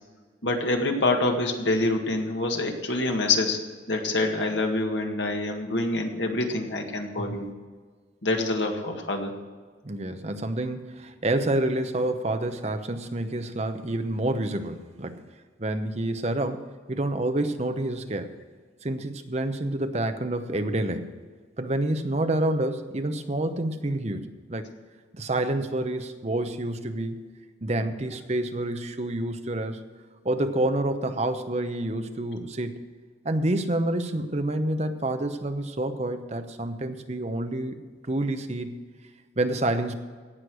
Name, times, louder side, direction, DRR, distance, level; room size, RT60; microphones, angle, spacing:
voice 1, 0.4-3.6 3.9-7.5 8.2-9.3, left 2 dB, 80° left, 3 dB, 1.9 m, -26 dB
voice 2, 7.2-7.5 9.8-15.2 15.6-18.3 18.8-21.1 21.6-24.6 25.1-27.2 27.6-29.8 30.2-32.8 33.2-37.8 38.0-38.8 39.4-39.9, right 1 dB, 35° right, 8 dB, 0.9 m, -28 dB
17.5 x 6.6 x 6.3 m, 1.5 s
head